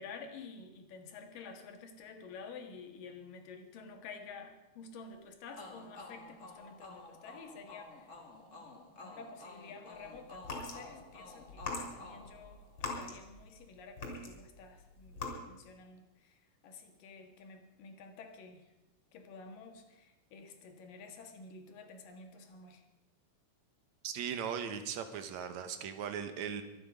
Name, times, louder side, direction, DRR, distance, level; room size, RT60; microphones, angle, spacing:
voice 1, 0.0-8.2 8.5-15.2 15.4-18.7 19.1-22.8, left 4 dB, 85° left, 5 dB, 3.3 m, -51 dB
sound 1, 5.5-13.1, left 2 dB, 25° left, 2.2 m, -52 dB
sound 2, 10.3-10.8 11.5-13.6 14.0-14.6 15.0-15.3, left 4 dB, 45° left, 3.7 m, -40 dB
voice 2, 24.0-26.6, right 8 dB, 65° right, 9 dB, 2.2 m, -38 dB
23.5 x 9.4 x 5.1 m, 1.0 s
omnidirectional pair, 3.8 m